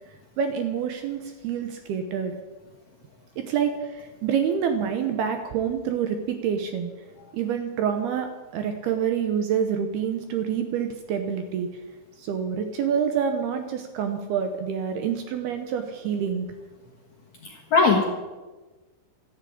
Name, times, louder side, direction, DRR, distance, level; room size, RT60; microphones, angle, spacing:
voice 1, 0.4-2.4 3.4-6.9 7.3-11.7 12.2-16.5, right 7 dB, 70° right, 6 dB, 2.6 m, -27 dB
voice 2, 17.4-18.0, left 4 dB, 60° left, 0 dB, 2.0 m, -20 dB
14.0 x 11.0 x 8.6 m, 1.2 s
omnidirectional pair, 5.4 m